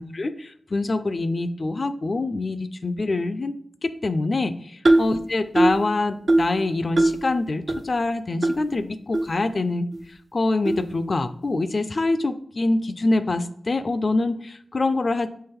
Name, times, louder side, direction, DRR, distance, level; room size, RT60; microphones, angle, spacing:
voice 1, 0.0-3.5 3.8-9.9 10.3-15.3, left 2 dB, 50° left, 12 dB, 0.4 m, -25 dB
sound 1, 4.8-5.2 5.6-5.8 6.3-6.6 7.0-7.2 7.7-7.8 8.4-8.5 9.1-9.2 9.9-10.0 10.6-10.8, right 2 dB, 50° right, 0.5 m, -19 dB
3.8 x 3.0 x 4.3 m, 0.66 s
cardioid pair, 50°, 0 cm